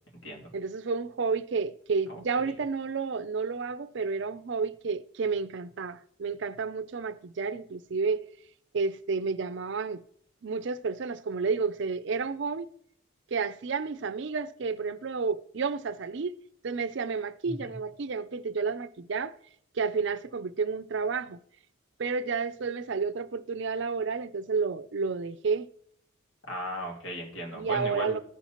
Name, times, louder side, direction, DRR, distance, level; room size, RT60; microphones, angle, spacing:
voice 1, 0.5-8.3 8.7-10.0 10.4-12.7 13.3-16.3 16.6-19.3 19.7-21.4 22.0-25.7 27.5-28.2, right 4 dB, 60° right, 0.5 m, -31 dB
voice 2, 2.1-2.5 17.5-17.6 26.5-28.2, equal, 75° left, 2.5 m, -36 dB
14.5 x 5.6 x 3.0 m
head